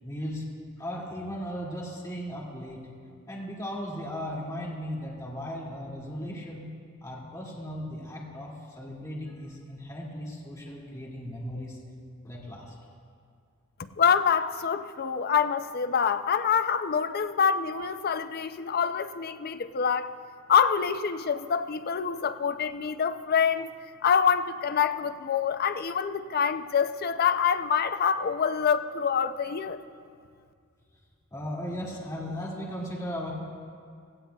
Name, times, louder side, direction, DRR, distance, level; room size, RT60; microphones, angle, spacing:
voice 1, 0.0-0.4 0.8-2.8 3.3-6.7 7.0-11.8 12.2-12.8 31.3-33.3, equal, 15° left, -5 dB, 2.2 m, -37 dB
voice 2, 14.0-20.2 20.5-23.7 24.0-29.8, left 7 dB, 45° left, 11 dB, 0.4 m, -26 dB
17.0 x 16.0 x 2.3 m, 2.2 s
head